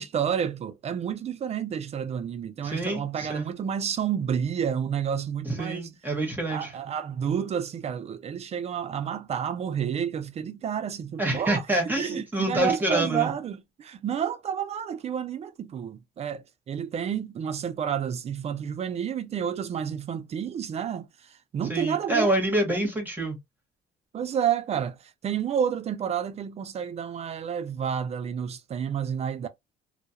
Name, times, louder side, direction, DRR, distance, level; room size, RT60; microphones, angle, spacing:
voice 1, 0.0-5.9 6.5-22.3 24.1-25.0 25.2-29.5, right 8 dB, 40° right, 0.4 m, -30 dB
voice 2, 2.6-3.5 5.4-6.7 11.2-13.3 21.7-23.4, right 1 dB, 10° right, 1.0 m, -27 dB
2.3 x 2.0 x 2.7 m
cardioid pair, 110°, 17 cm